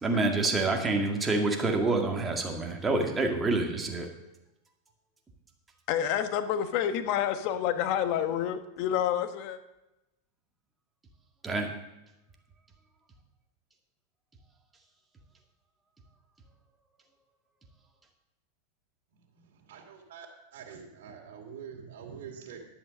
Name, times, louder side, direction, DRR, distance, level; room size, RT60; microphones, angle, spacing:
voice 1, 0.0-4.1 11.4-11.7, right 3 dB, 15° right, 2 dB, 1.9 m, -27 dB
voice 2, 5.9-9.6, left 10 dB, 50° left, 10 dB, 1.0 m, -28 dB
voice 3, 19.3-20.3 20.5-22.6, right 7 dB, 75° right, 0 dB, 2.5 m, -45 dB
11.0 x 7.4 x 6.5 m, 0.96 s
supercardioid pair, 135°, 0 cm